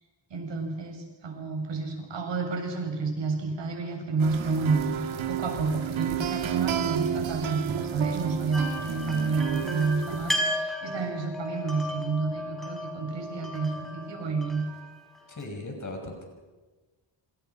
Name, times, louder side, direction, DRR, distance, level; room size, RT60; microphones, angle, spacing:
voice 1, 0.3-14.6, right 4 dB, 65° right, 2 dB, 7.3 m, -30 dB
sound 1, 4.2-10.3, right 9 dB, 90° right, 2.4 m, -31 dB
sound 2, 8.5-15.4, left 1 dB, ahead, 6.8 m, -35 dB
voice 2, 15.3-16.3, left 2 dB, 40° left, 4 dB, 6.2 m, -38 dB
28.0 x 26.0 x 5.9 m, 1.2 s
wide cardioid pair, 120°, 46 cm